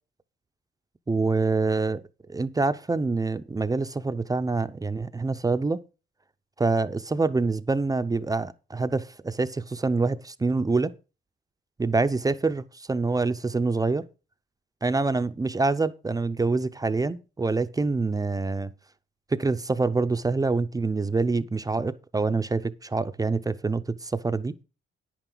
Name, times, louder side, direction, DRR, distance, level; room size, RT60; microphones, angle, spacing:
voice 1, 1.1-2.0 2.3-5.8 6.6-10.9 11.8-14.1 14.8-18.7 19.3-24.5, right 3 dB, 15° right, 0.6 m, -26 dB
10.0 x 9.0 x 3.9 m
cardioid pair, 120°, 21 cm